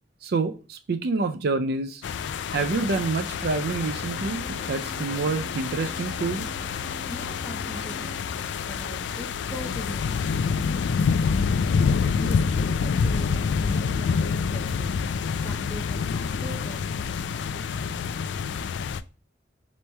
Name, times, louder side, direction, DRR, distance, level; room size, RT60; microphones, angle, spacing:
voice 1, 0.2-2.0 2.5-6.5, right 3 dB, 60° right, 8 dB, 0.4 m, -27 dB
sound 1, 2.0-19.0, left 5 dB, 75° left, 0.3 m, -27 dB
sound 2, 4.1-9.2, right 2 dB, 20° right, 0.8 m, -46 dB
voice 2, 7.1-11.0 12.2-15.0 15.4-18.2, equal, 15° left, 0 dB, 0.5 m, -41 dB
3.4 x 3.1 x 4.0 m, 0.35 s
head